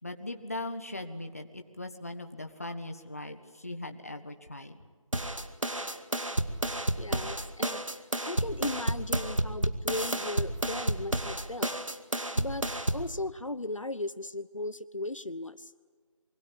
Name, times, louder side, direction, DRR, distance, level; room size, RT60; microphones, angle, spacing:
voice 1, 0.0-4.8, left 2 dB, 25° left, 6 dB, 1.5 m, -39 dB
sound 1, 5.1-13.1, right 1 dB, 65° right, 2.3 m, -31 dB
voice 2, 7.0-11.7 12.3-12.7 12.9-15.7, left 2 dB, 65° left, 13 dB, 1.2 m, -37 dB
26.0 x 24.0 x 8.6 m, 1.5 s
figure-of-eight pair, 175°, 17 cm